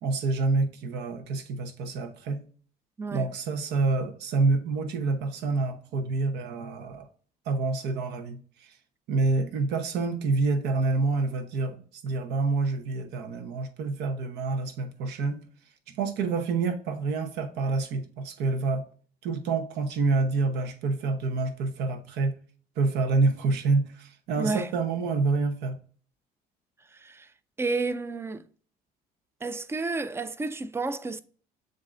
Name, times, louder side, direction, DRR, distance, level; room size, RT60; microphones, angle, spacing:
voice 1, 0.0-2.4 3.1-7.0 7.5-8.4 9.1-15.4 16.0-18.8 19.2-22.3 22.8-25.8, right 3 dB, 85° right, 0.9 m, -27 dB
voice 2, 3.0-3.3 24.4-24.7 26.9-27.3 27.6-28.4 29.4-31.2, right 3 dB, 15° right, 0.3 m, -31 dB
7.3 x 2.7 x 2.4 m
cardioid pair, 110°, 17 cm